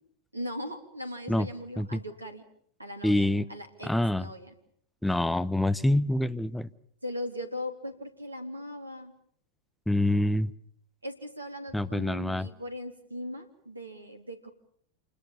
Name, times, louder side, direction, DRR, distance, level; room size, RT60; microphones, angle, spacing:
voice 1, 0.3-2.4 2.8-4.5 7.0-9.1 11.0-14.5, left 1 dB, 85° right, 7 dB, 3.3 m, -39 dB
voice 2, 3.0-3.5 3.8-4.3 5.0-6.7 9.9-10.5 11.7-12.5, left 1 dB, 5° left, 17 dB, 0.9 m, -26 dB
28.0 x 20.5 x 7.3 m, 0.64 s
figure-of-eight pair, 90°, 0 cm